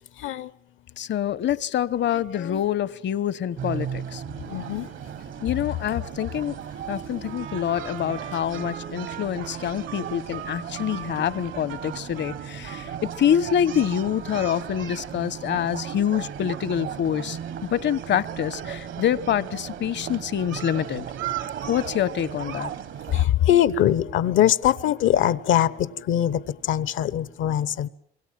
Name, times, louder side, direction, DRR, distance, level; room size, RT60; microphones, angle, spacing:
voice 1, 1.0-4.2 5.4-6.6 6.9-17.4 17.7-21.0 21.7-22.7, left 9 dB, 65° left, 1.1 m, -26 dB
sound 1, 3.6-23.3, right 9 dB, 70° right, 1.3 m, -36 dB
voice 2, 4.5-4.9 23.1-25.7 26.1-26.4 26.7-27.9, left 11 dB, 85° left, 1.2 m, -22 dB
Trumpet, 7.2-13.5 13.7-14.5, right 9 dB, 90° right, 3.9 m, -41 dB
26.5 x 23.5 x 7.6 m
cardioid pair, 90°, 20 cm